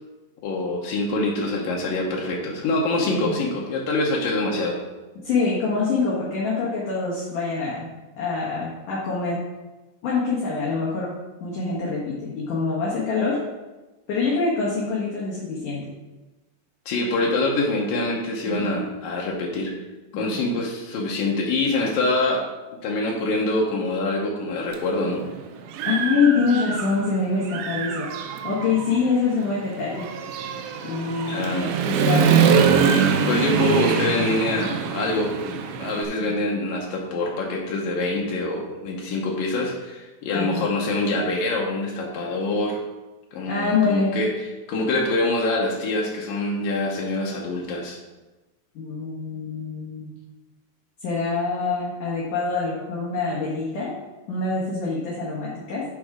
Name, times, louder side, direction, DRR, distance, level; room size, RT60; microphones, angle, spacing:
voice 1, 0.4-4.8 16.9-19.7 20.1-22.5 22.8-25.3 31.3-31.7 32.1-32.2 33.3-42.8 43.3-44.3 44.7-48.0, left 2 dB, 80° left, -2 dB, 2.0 m, -25 dB
voice 2, 5.2-7.9 8.2-9.4 10.0-11.1 11.4-13.4 14.1-15.8 18.4-18.7 20.3-20.4 25.9-28.1 28.4-30.1 30.8-31.4 31.8-32.5 36.2-36.3 40.3-40.7 43.5-44.2 48.7-50.1 51.0-53.9 54.3-55.9, left 4 dB, 60° left, -6 dB, 2.3 m, -25 dB
Human voice / Motorcycle, 24.7-24.8 25.3-27.1 27.5-36.1, right 6 dB, 85° right, 3.1 m, -23 dB
12.0 x 4.1 x 5.0 m, 1.1 s
omnidirectional pair, 5.6 m